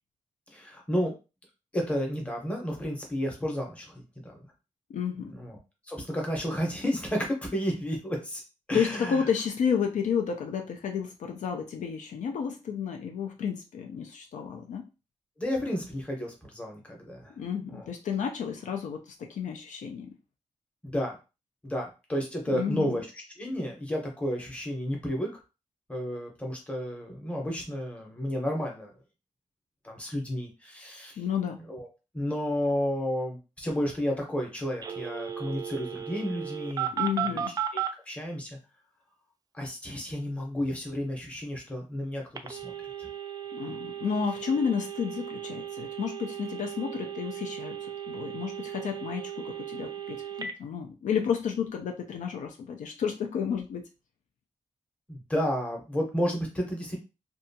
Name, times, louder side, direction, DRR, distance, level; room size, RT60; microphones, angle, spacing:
voice 1, 0.5-1.2 1.7-4.3 5.2-5.6 5.9-8.4 8.7-9.3 15.4-17.3 17.7-17.9 20.8-21.1 21.6-23.1 23.4-25.4 25.9-28.9 29.8-31.2 31.7-31.9 32.1-36.9 37.2-37.4 37.7-38.6 39.5-42.7 43.0-43.1 55.1-57.0, equal, 10° left, 0 dB, 0.8 m, -32 dB
voice 2, 4.9-5.3 8.7-14.9 17.3-20.1 22.5-23.0 31.2-31.6 36.9-37.5 43.5-53.8, left 7 dB, 70° left, 3 dB, 0.5 m, -31 dB
Telephone, 34.8-37.9 42.3-50.5, right 9 dB, 30° right, 0.3 m, -36 dB
2.7 x 2.3 x 2.7 m, 0.29 s
wide cardioid pair, 145°, 13 cm